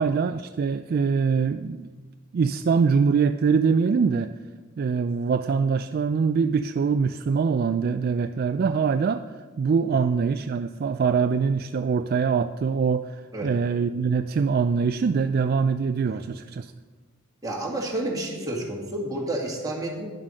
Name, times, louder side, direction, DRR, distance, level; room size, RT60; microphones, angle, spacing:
voice 1, 0.0-1.9 2.3-4.3 4.8-9.2 9.6-16.7, right 5 dB, 50° right, 10 dB, 0.3 m, -23 dB
voice 2, 17.4-20.1, right 1 dB, 20° right, -2 dB, 2.1 m, -30 dB
10.5 x 7.6 x 6.3 m, 1.4 s
head